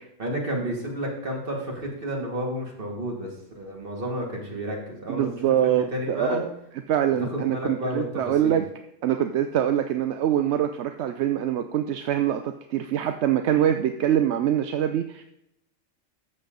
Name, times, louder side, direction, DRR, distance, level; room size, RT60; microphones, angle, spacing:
voice 1, 0.2-5.3 5.6-6.5 7.2-8.6, equal, 40° right, -1 dB, 2.5 m, -31 dB
voice 2, 5.1-6.5 6.9-8.6 9.0-15.2, right 10 dB, 65° right, 7 dB, 0.8 m, -24 dB
13.0 x 7.1 x 3.9 m, 0.81 s
omnidirectional pair, 1.4 m